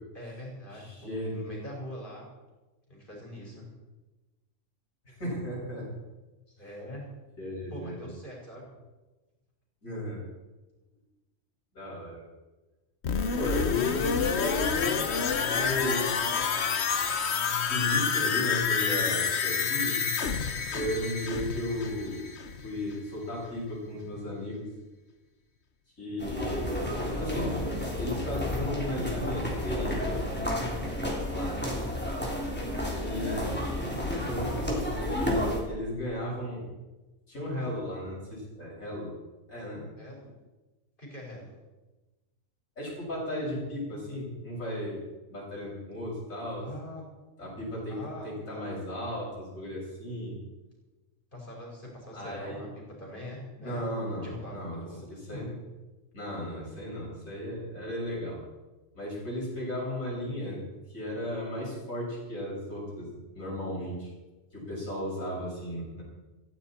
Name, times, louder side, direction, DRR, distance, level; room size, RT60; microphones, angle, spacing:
voice 1, 0.1-2.3 2.9-3.7 6.6-7.1 7.7-8.6 40.0-40.3 41.0-41.5 46.6-47.0 47.9-48.7 51.3-52.7 53.0-53.8 54.2-55.4, left 1 dB, 40° left, -2 dB, 5.4 m, -43 dB
voice 2, 0.7-1.4 5.0-5.9 7.4-8.1 9.8-10.2 11.7-12.3 13.3-15.0 15.5-16.2 17.3-20.0 20.7-22.3 22.6-24.7 26.0-26.8 27.2-27.6 27.9-30.2 31.3-31.6 33.0-33.4 34.3-36.6 37.3-39.1 39.5-39.8 42.8-45.0 45.3-46.7 47.4-50.4 52.1-52.6 53.6-55.6 56.1-58.4 58.9-60.6 60.9-64.1 64.5-66.0, left 1 dB, 85° left, -5 dB, 7.1 m, -35 dB
sound 1, 13.0-22.8 23.1-23.2, left 6 dB, 55° left, 1.2 m, -28 dB
sound 2, 26.2-35.6, left 1 dB, 5° left, 3.2 m, -31 dB
16.5 x 15.0 x 4.4 m, 1.1 s
omnidirectional pair, 1.4 m